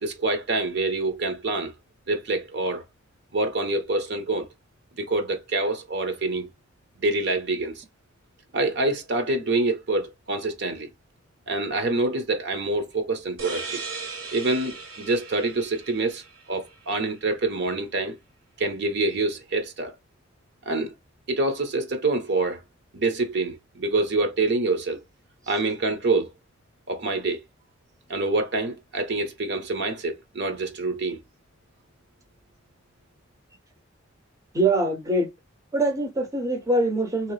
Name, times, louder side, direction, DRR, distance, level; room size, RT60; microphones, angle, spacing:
voice 1, 0.0-1.7 2.1-2.8 3.3-4.5 5.0-6.5 7.0-7.8 8.5-10.9 11.5-13.8 14.3-16.2 16.5-18.2 18.6-19.9 20.7-20.9 21.3-22.6 22.9-25.0 25.5-26.3 26.9-27.4 28.1-31.2, right 2 dB, 60° right, 0.8 m, -26 dB
sound 1, 13.4-16.8, right 4 dB, 75° right, 1.2 m, -37 dB
voice 2, 34.5-35.3 35.7-37.3, right 2 dB, 15° right, 0.7 m, -23 dB
3.1 x 2.9 x 3.2 m
head